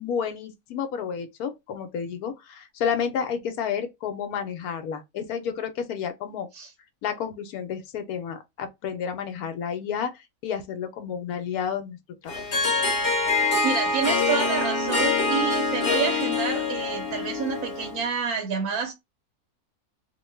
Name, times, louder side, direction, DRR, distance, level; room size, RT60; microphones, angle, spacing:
voice 1, 0.0-6.5 7.0-12.0 12.2-12.4, left 7 dB, 80° left, 1.1 m, -31 dB
Harp, 12.3-18.1, left 3 dB, 40° left, 1.1 m, -25 dB
voice 2, 13.6-18.9, right 5 dB, 75° right, 1.1 m, -28 dB
2.9 x 2.2 x 3.1 m
omnidirectional pair, 1.6 m